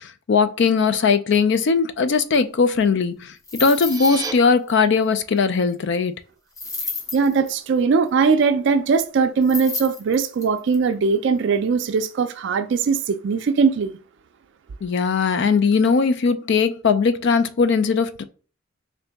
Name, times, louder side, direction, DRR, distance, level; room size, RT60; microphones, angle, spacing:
voice 1, 0.0-3.3 3.6-6.1 14.8-18.2, left 5 dB, 60° left, 0.4 m, -19 dB
sound 1, 3.4-4.4 4.7-4.8 6.6-7.5 9.4-10.7, left 3 dB, 15° left, 0.7 m, -31 dB
sound 2, 3.5-4.3, right 5 dB, 20° right, 0.6 m, -33 dB
voice 2, 7.1-14.0, right 5 dB, 60° right, 0.4 m, -20 dB
3.8 x 2.6 x 3.4 m
head